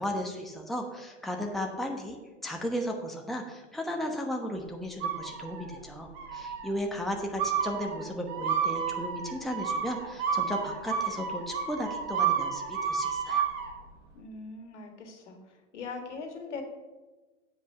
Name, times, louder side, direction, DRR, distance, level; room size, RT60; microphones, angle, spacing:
voice 1, 0.0-2.2 2.4-13.4, equal, ahead, 2 dB, 1.1 m, -35 dB
sound 1, 5.0-5.8 6.1-6.7 7.4-13.7, right 7 dB, 50° right, 2.0 m, -31 dB
voice 2, 14.1-16.6, left 4 dB, 75° left, 5 dB, 1.8 m, -41 dB
8.0 x 5.2 x 6.6 m, 1.2 s
hypercardioid pair, 100°, 36 cm